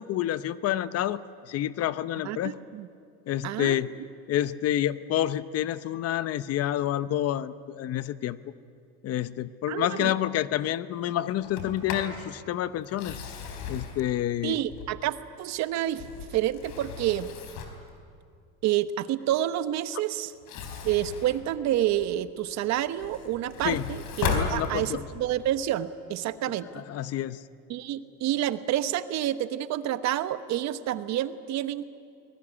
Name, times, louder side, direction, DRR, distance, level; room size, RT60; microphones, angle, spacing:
voice 1, 0.0-2.6 3.3-3.9 4.3-8.4 9.0-13.2 13.7-14.6 23.6-23.9 24.3-25.0 26.7-27.4, left 12 dB, 50° left, 15 dB, 0.9 m, -28 dB
voice 2, 2.2-2.9 3.4-4.1 9.7-10.1 14.4-16.0 16.3-17.3 18.6-20.3 20.8-26.8 27.7-31.9, right 12 dB, 55° right, 12 dB, 1.2 m, -29 dB
Sliding door, 11.4-12.2 12.8-15.2 15.7-17.9 20.3-22.2 22.7-25.2, left 5 dB, 70° left, 4.2 m, -36 dB
24.0 x 20.0 x 10.0 m, 2.3 s
supercardioid pair, 115°, 32 cm